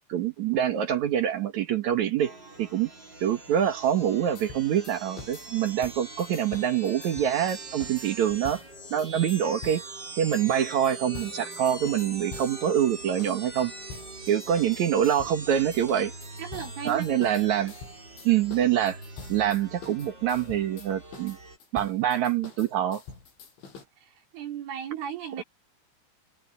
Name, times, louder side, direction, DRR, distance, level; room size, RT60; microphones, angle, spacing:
voice 1, 0.1-2.3 2.6-2.9 3.2-8.6 8.9-9.8 10.2-13.7 14.3-16.1 16.9-17.7 18.2-19.0 19.3-21.4 21.7-23.0 25.4-25.5, right 10 dB, 65° right, 1.9 m, -25 dB
sound 1, 2.2-21.6, right 2 dB, 25° right, 6.1 m, -42 dB
sound 2, 4.4-9.9 10.3-12.7 13.2-13.4 13.9-15.4 15.7-23.8, left 5 dB, 80° left, 9.6 m, -46 dB
voice 2, 16.4-17.1 24.0-25.4, right 9 dB, 85° right, 6.1 m, -36 dB
omnidirectional pair, 5.4 m